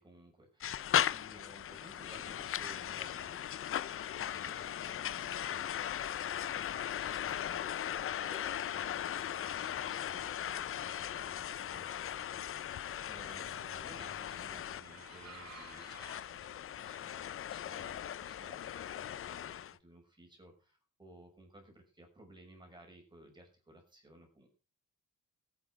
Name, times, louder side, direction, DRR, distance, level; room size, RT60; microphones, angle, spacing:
voice 1, 0.0-3.4 3.8-24.5, right 1 dB, 15° right, 2 dB, 6.5 m, -58 dB
sound 1, 0.6-19.7, left 10 dB, 45° left, 0.6 m, -38 dB
sound 2, 6.0-16.2, right 6 dB, 60° right, 3.7 m, -59 dB
15.0 x 9.5 x 4.8 m, 0.33 s
cardioid pair, 90°, 30 cm